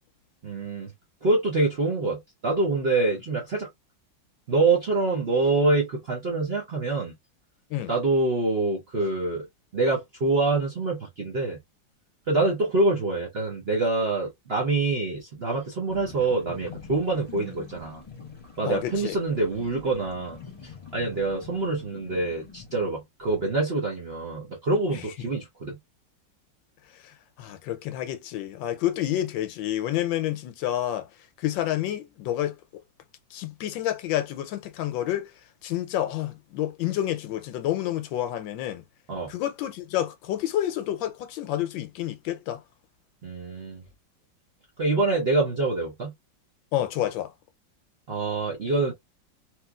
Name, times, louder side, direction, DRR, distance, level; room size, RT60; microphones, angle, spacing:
voice 1, 0.4-0.9 1.2-3.7 4.5-7.1 7.9-9.5 9.7-11.6 12.3-18.0 18.6-25.8 39.1-39.3 43.2-43.8 44.8-46.1 48.1-48.9, right 3 dB, 50° right, 0.7 m, -26 dB
sound 1, 15.9-22.9, left 5 dB, 25° left, 1.0 m, -45 dB
voice 2, 18.6-19.2 24.9-25.0 27.0-31.1 31.4-32.8 33.3-35.3 35.6-38.8 39.3-42.6 46.7-47.3, left 12 dB, 80° left, 1.3 m, -29 dB
3.1 x 3.0 x 2.3 m
omnidirectional pair, 2.1 m